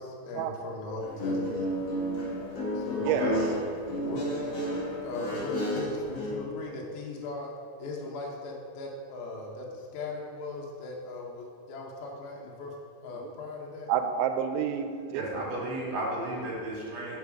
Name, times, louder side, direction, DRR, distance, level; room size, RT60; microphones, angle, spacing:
voice 1, 0.0-1.7 2.7-3.6 4.0-4.4 5.0-7.5 7.8-12.7 13.0-13.9, left 3 dB, 75° left, -1 dB, 2.3 m, -38 dB
Guitar, 1.0-6.3, equal, 55° left, 1.9 m, -31 dB
voice 2, 3.0-3.3 13.2-13.3 13.9-15.2, right 9 dB, 90° right, 8 dB, 2.9 m, -29 dB
voice 3, 15.2-17.2, right 1 dB, 70° right, -4 dB, 3.5 m, -33 dB
7.2 x 6.1 x 4.6 m, 2.2 s
omnidirectional pair, 5.1 m